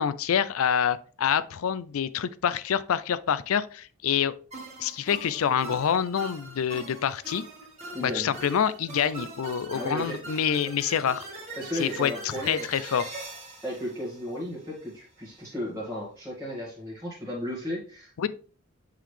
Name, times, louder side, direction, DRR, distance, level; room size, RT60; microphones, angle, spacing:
voice 1, 0.0-4.3 4.8-7.4 8.0-11.3 11.7-13.1 18.2-18.3, left 8 dB, 75° left, 0.4 m, -26 dB
sound 1, 4.5-14.9, right 2 dB, 30° right, 1.9 m, -42 dB
voice 2, 7.9-8.3 9.7-10.4 11.6-12.7 13.6-18.3, left 1 dB, 15° right, 1.8 m, -35 dB
7.4 x 3.9 x 3.3 m
head